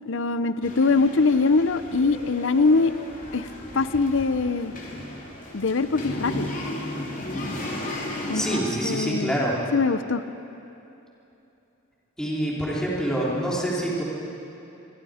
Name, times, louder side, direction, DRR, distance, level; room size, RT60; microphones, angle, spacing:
voice 1, 0.1-2.9 3.3-3.5 3.7-4.7 5.5-6.5 8.3-9.4 9.7-10.2, left 4 dB, 60° left, 13 dB, 0.7 m, -22 dB
sound 1, 0.6-8.6, left 1 dB, 40° left, 3.2 m, -35 dB
voice 2, 8.3-9.6 12.2-14.0, right 1 dB, 5° left, -6 dB, 3.4 m, -26 dB
26.0 x 23.5 x 5.0 m, 2.9 s
head